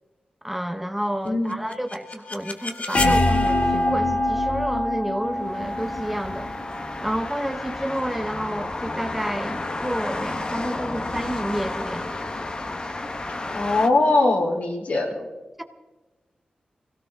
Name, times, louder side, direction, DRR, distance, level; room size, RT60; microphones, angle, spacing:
voice 1, 0.4-6.5 7.0-12.2 15.6-15.7, equal, 5° right, 7 dB, 0.8 m, -30 dB
sound 1, 1.5-7.4, left 1 dB, 55° left, 1.4 m, -24 dB
sound 2, 5.3-13.9, left 2 dB, 35° left, 1.1 m, -32 dB
voice 2, 13.5-15.3, left 2 dB, 70° left, 0 dB, 3.3 m, -21 dB
23.0 x 17.0 x 3.5 m, 1.2 s
wide cardioid pair, 130°, 3 cm